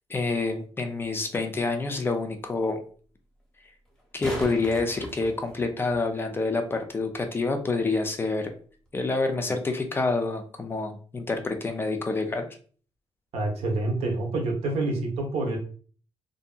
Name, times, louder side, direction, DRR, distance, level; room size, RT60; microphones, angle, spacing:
voice 1, 0.1-2.8 4.1-8.5 8.9-12.5, left 3 dB, 20° left, 5 dB, 0.3 m, -27 dB
sound 1, 3.8-6.0 8.9-9.0, equal, 5° left, 0.7 m, -38 dB
voice 2, 13.3-15.6, right 2 dB, 75° right, 1 dB, 0.9 m, -27 dB
2.6 x 2.6 x 2.3 m, 0.43 s
cardioid pair, 155°, 11 cm